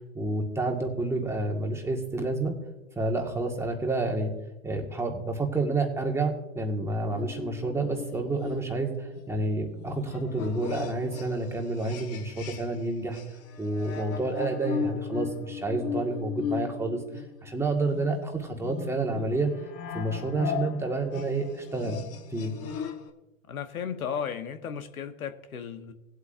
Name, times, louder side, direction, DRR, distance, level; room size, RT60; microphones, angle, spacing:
voice 1, 0.0-2.6 2.9-4.3 4.6-13.2 13.6-17.0 17.4-19.5 19.9-22.0 22.3-22.5, right 2 dB, 5° right, 2 dB, 1.7 m, -29 dB
sound 1, 7.1-12.9 13.1-23.1, left 7 dB, 35° left, 1.3 m, -37 dB
voice 2, 23.5-25.9, left 7 dB, 85° left, 8 dB, 1.3 m, -35 dB
19.0 x 8.1 x 2.6 m, 1.0 s
hypercardioid pair, 115°, 41 cm